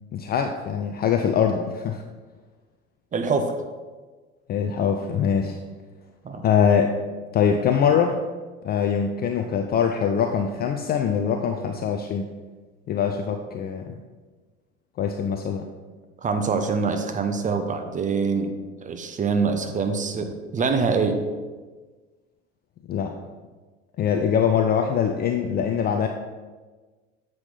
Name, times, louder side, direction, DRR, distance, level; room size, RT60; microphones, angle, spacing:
voice 1, 0.1-2.0 4.5-5.6 6.4-6.9 7.3-8.2 8.6-12.3 12.9-13.9 15.0-15.7 22.9-23.2 24.0-26.1, left 7 dB, 25° left, 4 dB, 0.5 m, -23 dB
voice 2, 3.1-3.6 6.2-6.4 16.2-21.3, right 4 dB, 20° right, 7 dB, 0.7 m, -25 dB
7.8 x 5.8 x 4.0 m, 1.3 s
figure-of-eight pair, 65°, 35 cm